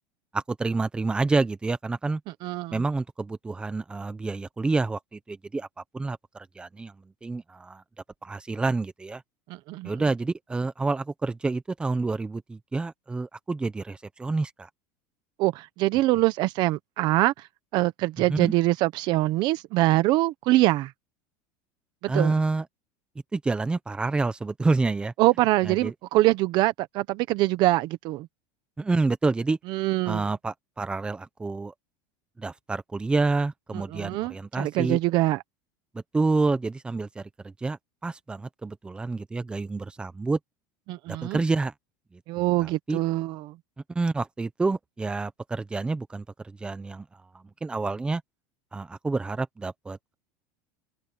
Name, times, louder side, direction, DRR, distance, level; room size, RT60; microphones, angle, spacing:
voice 1, 0.3-2.2 2.7-5.7 5.9-6.9 7.2-7.8 8.2-9.2 9.8-14.7 18.3-18.5 22.1-22.7 23.3-25.1 25.6-25.9 28.8-29.6 30.1-31.7 32.4-35.0 35.9-40.4 41.1-41.7 42.1-43.0 43.9-47.0 47.6-48.2 48.7-50.1, right 3 dB, 10° right, 1.1 m, -28 dB
voice 2, 2.4-2.8 9.5-9.9 15.4-17.3 17.7-20.9 22.0-22.3 25.2-28.3 29.7-30.2 33.7-35.4 40.9-41.4 42.3-43.5, right 18 dB, 45° right, 1.1 m, -24 dB
supercardioid pair, 150°, 10 cm